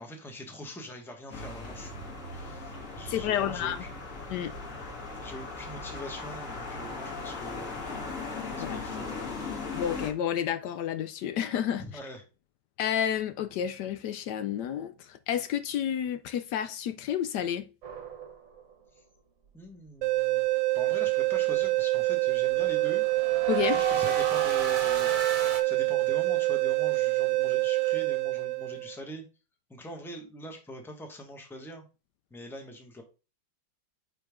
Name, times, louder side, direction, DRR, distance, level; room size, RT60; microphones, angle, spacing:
voice 1, 0.0-1.9 2.3-4.0 5.2-7.8 8.5-9.2 11.8-12.2 19.5-20.4 20.7-23.0 23.6-29.2 29.7-31.9 32.3-33.0, equal, ahead, 1.0 m, -43 dB
sound 1, 1.3-10.1, left 3 dB, 50° left, 1.9 m, -38 dB
voice 2, 3.1-3.8 4.3-4.5 8.6-8.8 9.7-11.8 12.8-17.7 23.5-23.8, left 10 dB, 75° left, 1.1 m, -30 dB
sound 2, 17.8-18.7 22.5-25.6, right 5 dB, 55° right, 1.4 m, -34 dB
sound 3, 20.0-29.0, right 21 dB, 85° right, 1.3 m, -26 dB
8.8 x 4.0 x 3.5 m
omnidirectional pair, 1.9 m